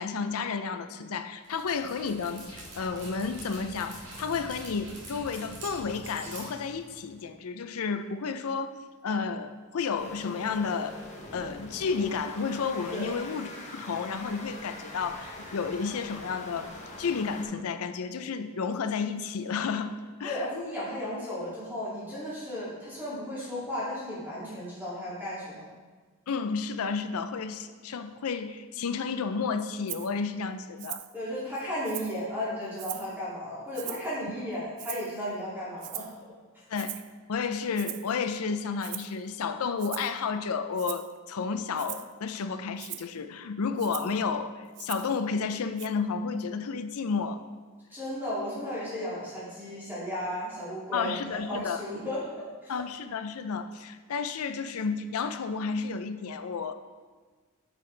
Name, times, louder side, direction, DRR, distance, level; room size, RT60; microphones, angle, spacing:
voice 1, 0.0-8.7 9.0-11.0 11.3-16.7 17.0-20.7 26.3-31.0 36.7-37.0 37.3-47.4 50.9-51.8 52.7-56.7, left 5 dB, 70° left, 9 dB, 0.5 m, -32 dB
Dog, 1.4-7.2, right 1 dB, 55° right, 2.1 m, -44 dB
sound 1, 10.0-17.4, left 2 dB, 30° left, 1.1 m, -44 dB
voice 2, 20.2-25.6 31.1-36.1 47.9-51.1 51.5-52.2 52.6-52.7, left 1 dB, 10° right, -10 dB, 2.4 m, -34 dB
Rattle (instrument), 29.9-30.1 30.8-31.1 31.6-32.2 32.8-33.2 33.7-34.2 34.8-35.2 35.8-36.2 36.8-37.1 37.8-38.1 38.8-39.1 39.8-40.2 40.8-41.1 41.8-42.1 42.8-43.1 43.8-44.2 44.8-45.2 45.8-45.9, right 16 dB, 75° right, 0.3 m, -40 dB
9.0 x 5.6 x 3.3 m, 1.4 s
head